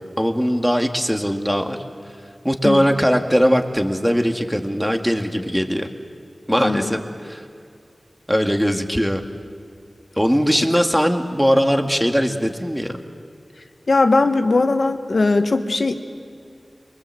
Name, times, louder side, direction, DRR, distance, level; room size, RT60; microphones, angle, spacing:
voice 1, 0.2-1.8 2.4-5.9 6.5-7.4 8.3-9.2 10.2-13.0, equal, ahead, 4 dB, 2.0 m, -20 dB
voice 2, 6.6-7.0 13.9-15.9, left 3 dB, 70° left, 7 dB, 1.5 m, -19 dB
27.5 x 23.5 x 7.8 m, 2.3 s
wide cardioid pair, 60°, 0 cm